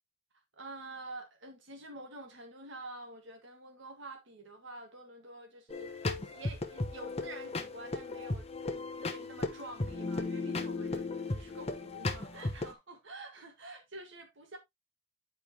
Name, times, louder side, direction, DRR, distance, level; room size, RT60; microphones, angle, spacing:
voice 1, 0.6-8.4 8.7-14.6, right 2 dB, 70° right, 1.7 m, -48 dB
sound 1, 5.7-12.7, left 3 dB, 30° left, 1.1 m, -36 dB
10.0 x 5.1 x 2.9 m
head